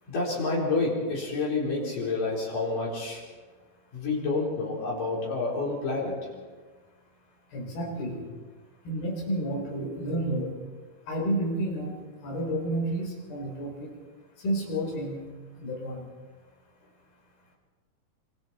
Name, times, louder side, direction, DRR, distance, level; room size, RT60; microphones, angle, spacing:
voice 1, 0.1-3.2 3.9-6.3, left 3 dB, 60° left, -4 dB, 5.9 m, -29 dB
voice 2, 7.5-8.2 8.9-10.5 11.1-11.9 12.2-13.9 14.4-15.3 15.6-16.0, right 1 dB, 80° left, 0 dB, 6.2 m, -30 dB
26.5 x 26.0 x 4.4 m, 1.4 s
omnidirectional pair, 4.3 m